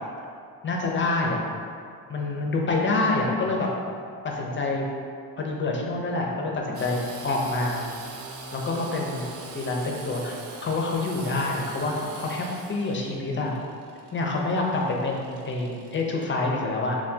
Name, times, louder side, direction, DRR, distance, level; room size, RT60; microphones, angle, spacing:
voice 1, 0.6-1.4 2.1-3.7 4.2-4.8 5.4-7.8 8.5-9.2 9.5-13.5 14.1-17.0, left 2 dB, 30° left, -1 dB, 0.7 m, -27 dB
Engine / Sawing, 6.7-16.2, right 3 dB, 40° right, 0.5 m, -42 dB
5.6 x 2.3 x 2.8 m, 2.3 s
cardioid pair, 90°, 39 cm